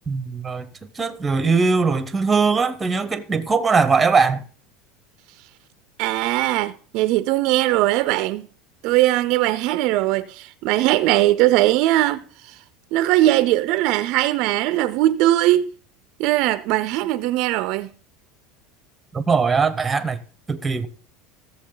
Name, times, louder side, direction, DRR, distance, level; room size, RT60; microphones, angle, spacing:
voice 1, 0.1-0.7 0.9-4.4 19.1-20.2 20.5-20.9, right 4 dB, 10° right, 0.8 m, -20 dB
voice 2, 6.0-8.5 8.8-12.6 12.9-15.7 16.2-17.9, right 16 dB, 55° right, 0.5 m, -20 dB
16.0 x 7.2 x 3.9 m
supercardioid pair, 155°, 0 cm